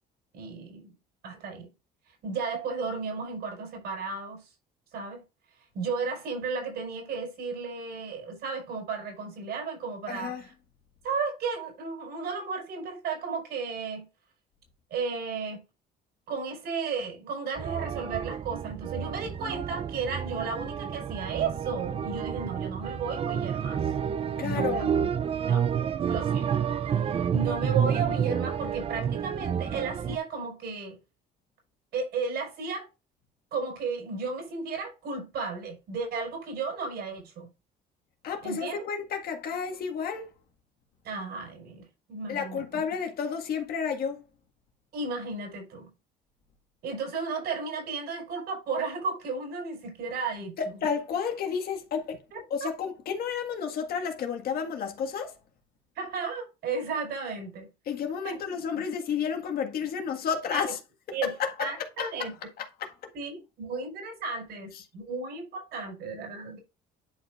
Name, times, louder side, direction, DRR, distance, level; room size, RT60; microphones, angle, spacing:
voice 1, 0.3-0.9 1.2-1.7 2.2-4.5 4.9-5.2 5.7-10.5 11.0-14.1 14.9-15.6 16.3-23.9 24.4-24.9 25.4-25.6 26.1-26.6 26.8-31.0 31.9-32.9 33.5-37.5 38.4-38.8 41.0-42.6 44.9-45.9 46.8-50.8 52.3-52.7 55.9-57.7 58.2-58.3 58.7-58.8 60.5-60.6 61.1-61.3 61.6-62.3 63.1-66.6, right 4 dB, 75° right, 4.8 m, -34 dB
voice 2, 10.1-10.4 24.4-24.9 38.2-40.3 42.3-44.2 50.6-52.2 52.5-55.3 57.8-60.8 61.1-62.3 62.6-63.1 64.7-64.8, left 6 dB, 65° left, 1.8 m, -31 dB
sound 1, 17.6-30.2, right 8 dB, 35° right, 0.5 m, -29 dB
10.5 x 4.8 x 2.5 m
cardioid pair, 110°, 17 cm